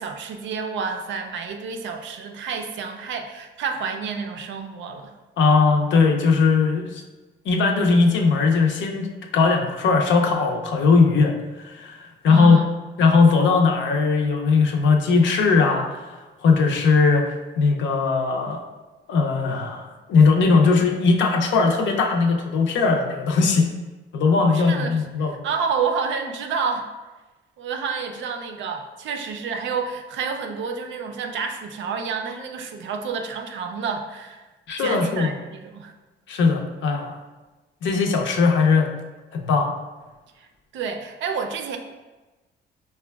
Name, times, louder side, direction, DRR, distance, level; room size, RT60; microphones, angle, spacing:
voice 1, 0.0-5.2 12.3-12.8 24.5-26.9 27.6-34.4 34.8-35.9 40.4-40.5 40.7-41.8, right 5 dB, 70° right, 5 dB, 0.4 m, -29 dB
voice 2, 5.4-7.0 7.4-12.6 13.0-18.6 19.1-23.7 24.1-25.4 34.7-35.3 36.3-37.2 37.8-38.9 39.3-39.7, left 4 dB, 70° left, 2 dB, 0.5 m, -19 dB
4.9 x 2.2 x 2.2 m, 1.2 s
cardioid pair, 90°, 20 cm